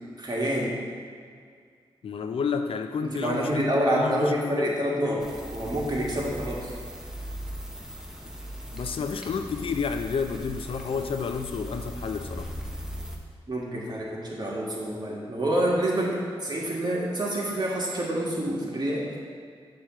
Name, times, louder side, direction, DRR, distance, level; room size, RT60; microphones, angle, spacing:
voice 1, 0.2-0.8 3.0-6.7 13.5-19.1, right 1 dB, 45° right, -4 dB, 1.6 m, -27 dB
voice 2, 2.0-4.7 8.7-12.5, left 5 dB, 70° left, 7 dB, 0.4 m, -31 dB
sound 1, 5.2-13.2, equal, 5° right, 0.8 m, -38 dB
6.6 x 3.0 x 5.9 m, 2.1 s
cardioid pair, 55°, 10 cm